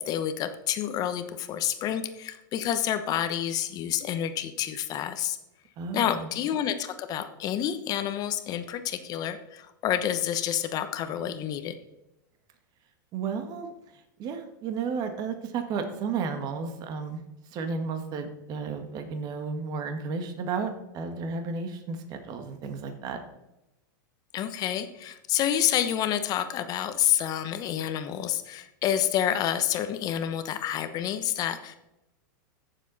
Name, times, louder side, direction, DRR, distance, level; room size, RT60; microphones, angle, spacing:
voice 1, 0.0-5.4 5.9-11.7 24.3-31.8, left 10 dB, 35° left, 9 dB, 1.0 m, -28 dB
voice 2, 5.8-6.3 13.1-13.7 14.2-17.2 17.5-23.2, right 5 dB, 40° right, 6 dB, 1.7 m, -33 dB
15.5 x 7.2 x 4.1 m, 0.92 s
supercardioid pair, 130°, 10 cm